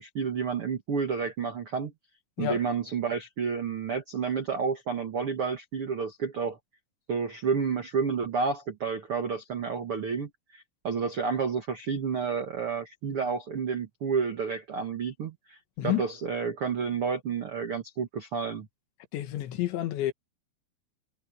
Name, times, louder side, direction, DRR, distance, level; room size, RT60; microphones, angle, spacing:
voice 1, 0.0-1.9 2.4-6.6 7.1-15.6 15.8-18.7, right 5 dB, 80° right, 1.2 m, -30 dB
voice 2, 19.1-20.1, left 13 dB, 85° left, 4.0 m, -29 dB
omnidirectional pair, 5.1 m